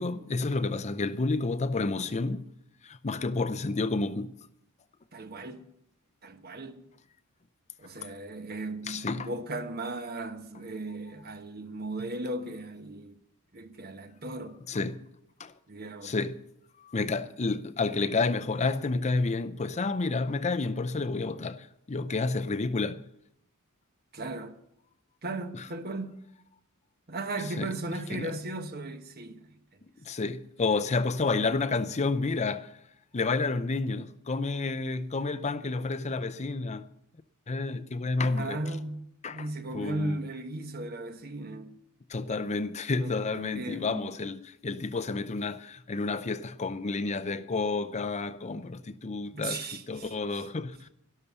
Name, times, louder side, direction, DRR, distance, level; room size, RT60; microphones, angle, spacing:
voice 1, 0.0-2.4 2.8-4.3 8.8-9.3 14.7-15.0 15.4-15.5 16.0-16.4 16.8-23.1 25.5-25.7 27.6-27.7 28.1-28.3 30.0-32.8 33.1-36.9 37.5-38.6 39.2-39.5 39.7-40.2 42.1-50.9, left 3 dB, 30° left, 0.6 m, -30 dB
voice 2, 5.1-5.6 6.2-6.8 7.8-13.2 13.5-14.6 15.7-16.1 24.1-24.6 25.2-26.3 27.1-29.6 38.2-41.8 43.0-44.1 49.3-50.1, right 2 dB, 45° right, 1.2 m, -37 dB
12.5 x 12.5 x 6.9 m
head